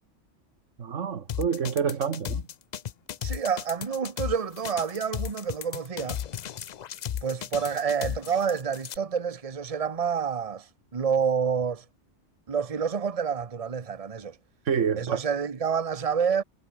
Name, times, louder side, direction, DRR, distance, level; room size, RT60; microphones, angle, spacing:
voice 1, 0.8-2.5 14.7-15.2, right 7 dB, 85° right, 1.6 m, -27 dB
sound 1, 1.3-9.0, left 9 dB, 55° left, 0.5 m, -34 dB
voice 2, 3.2-6.2 7.2-11.8 12.5-14.4 15.0-16.4, right 6 dB, 30° right, 1.1 m, -28 dB
omnidirectional pair, 1.2 m